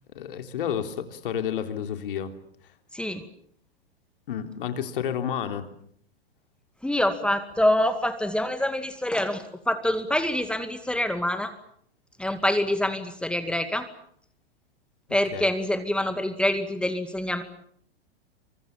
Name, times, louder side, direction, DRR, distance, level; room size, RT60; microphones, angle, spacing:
voice 1, 0.1-2.3 4.3-5.7 15.3-15.5, left 9 dB, 60° left, 7 dB, 3.6 m, -30 dB
voice 2, 6.8-11.5 12.2-13.9 15.1-17.4, left 1 dB, 5° left, 9 dB, 2.2 m, -26 dB
28.0 x 25.0 x 7.4 m, 0.63 s
figure-of-eight pair, 105°, 30 cm